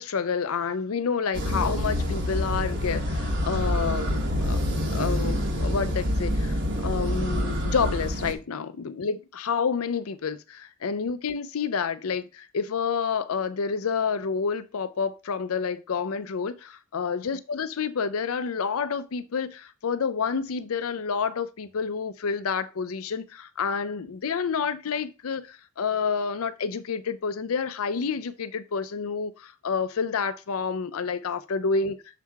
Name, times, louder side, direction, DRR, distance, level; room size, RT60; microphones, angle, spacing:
voice 1, 0.0-4.6 4.9-32.0, left 5 dB, 80° left, 0.5 m, -29 dB
sound 1, 1.3-8.3, equal, 55° right, 1.3 m, -27 dB
6.8 x 4.7 x 3.5 m
head